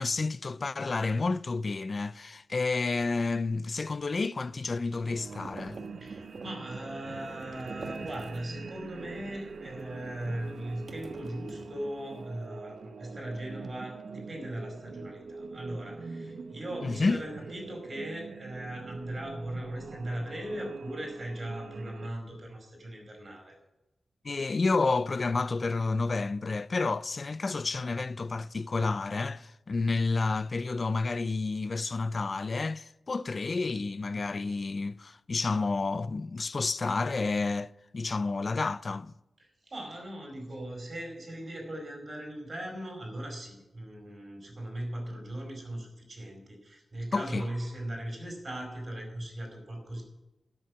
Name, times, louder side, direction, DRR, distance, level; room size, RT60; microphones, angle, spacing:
voice 1, 0.0-5.8 16.8-17.2 24.2-39.1 47.1-47.4, left 3 dB, 40° left, 0.4 m, -30 dB
sound 1, 4.8-8.7 9.0-12.1, right 3 dB, 55° right, 1.4 m, -48 dB
sound 2, 5.0-22.1, right 4 dB, 70° right, 0.8 m, -44 dB
voice 2, 6.0-23.6 39.4-50.0, right 1 dB, 35° right, 4.9 m, -39 dB
12.0 x 6.9 x 9.5 m
wide cardioid pair, 140°, 0 cm